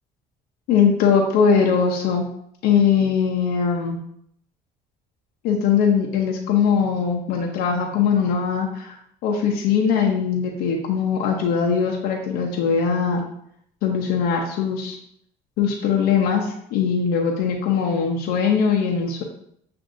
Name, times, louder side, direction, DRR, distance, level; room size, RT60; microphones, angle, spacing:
voice 1, 0.7-2.3 2.6-4.0 5.4-9.0 9.2-13.2 13.8-15.0 15.6-19.2, left 6 dB, 85° left, 0 dB, 0.6 m, -21 dB
7.6 x 2.6 x 2.6 m, 0.71 s
cardioid pair, 110°, 16 cm